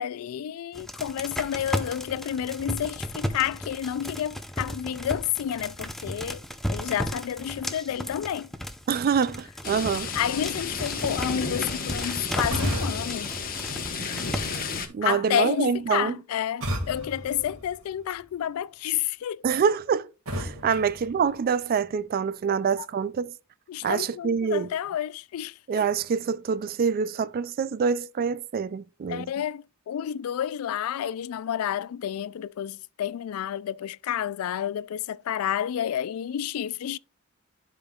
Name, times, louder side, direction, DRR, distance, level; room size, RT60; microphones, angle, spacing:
voice 1, 0.0-8.5 10.1-13.3 15.0-19.4 22.8-22.9 23.7-25.6 29.1-37.0, left 10 dB, 80° left, 0.3 m, -30 dB
sound 1, 0.7-14.8, equal, ahead, 0.6 m, -35 dB
voice 2, 8.9-10.1 14.9-16.2 19.4-20.1 20.3-23.3 23.8-24.7 25.7-29.3, right 6 dB, 45° right, 0.3 m, -26 dB
sound 2, 9.6-14.9, left 5 dB, 45° left, 1.1 m, -33 dB
sound 3, 12.5-14.4 16.6-18.3 20.3-21.9, equal, 75° right, 2.0 m, -34 dB
11.5 x 5.2 x 2.4 m
head